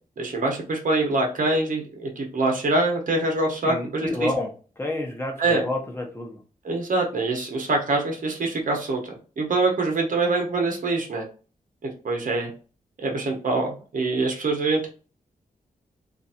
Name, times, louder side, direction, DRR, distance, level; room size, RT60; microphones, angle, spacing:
voice 1, 0.2-4.1 5.4-5.6 6.6-11.2 11.8-12.5 13.0-14.9, right 2 dB, 65° right, 1 dB, 1.0 m, -24 dB
voice 2, 3.6-6.4, left 2 dB, 15° left, 0 dB, 0.8 m, -29 dB
3.1 x 2.6 x 2.8 m, 0.36 s
wide cardioid pair, 105°, 15 cm